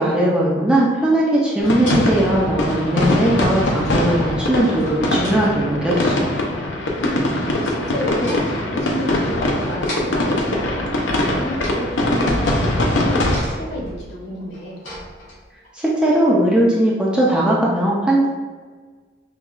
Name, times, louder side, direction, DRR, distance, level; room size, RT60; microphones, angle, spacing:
voice 1, 0.0-6.4 15.7-18.3, right 1 dB, 5° right, -5 dB, 0.4 m, -18 dB
sound 1, 1.6-13.4, left 1 dB, 75° left, 0.5 m, -21 dB
sound 2, 1.7-2.1 2.7-3.3 3.6-4.1 4.8-5.8 7.7-7.9 8.2-8.6 9.8-10.2 11.1-11.2 11.3-11.8 12.1-15.7, left 1 dB, 90° left, 1.4 m, -34 dB
voice 2, 7.0-14.8, equal, 60° left, -3 dB, 0.9 m, -30 dB
5.4 x 2.3 x 2.4 m, 1.5 s
head